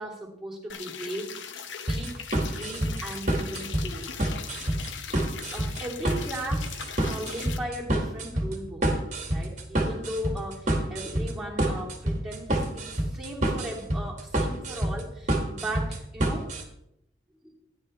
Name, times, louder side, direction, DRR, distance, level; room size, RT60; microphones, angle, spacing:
voice 1, 0.0-1.5 1.9-4.1 5.5-9.0 9.3-16.5 17.4-17.5, right 1 dB, 5° right, -5 dB, 2.7 m, -37 dB
sound 1, 0.7-7.6, left 7 dB, 75° left, 0.9 m, -40 dB
sound 2, 1.9-16.6, right 1 dB, 40° right, 1.8 m, -28 dB
13.5 x 10.5 x 3.2 m, 0.77 s
head